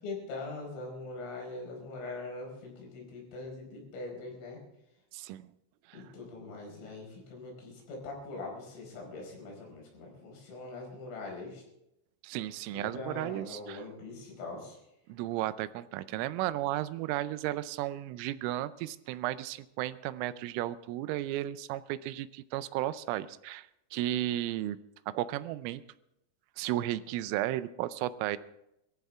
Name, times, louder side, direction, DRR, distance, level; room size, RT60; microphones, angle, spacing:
voice 1, 0.0-4.6 5.9-11.6 12.7-14.8, left 3 dB, 85° left, 0 dB, 7.3 m, -42 dB
voice 2, 5.1-5.5 5.9-6.0 12.2-13.8 15.1-24.8 25.1-25.8 26.6-28.4, right 14 dB, 85° right, 14 dB, 3.2 m, -34 dB
22.0 x 14.5 x 3.6 m, 0.84 s
omnidirectional pair, 5.6 m